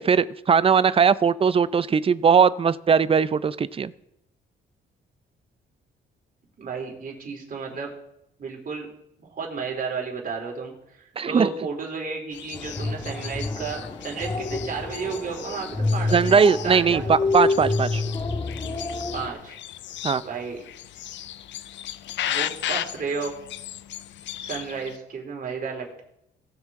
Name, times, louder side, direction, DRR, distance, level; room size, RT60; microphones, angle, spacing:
voice 1, 0.0-3.9 11.2-11.5 16.1-18.0 20.0-20.2, right 6 dB, 30° right, 16 dB, 0.5 m, -19 dB
voice 2, 6.6-7.9 8.4-8.9 9.2-10.7 11.2-17.1 19.1-19.6 20.2-20.6 22.2-23.3 24.4-26.0, right 5 dB, 45° right, 0 dB, 3.3 m, -32 dB
sound 1, 12.3-25.0, left 11 dB, 65° left, 0.5 m, -36 dB
sound 2, 12.5-19.3, left 3 dB, 25° left, 1.7 m, -28 dB
18.5 x 6.3 x 3.7 m, 0.81 s
cardioid pair, 90°, 20 cm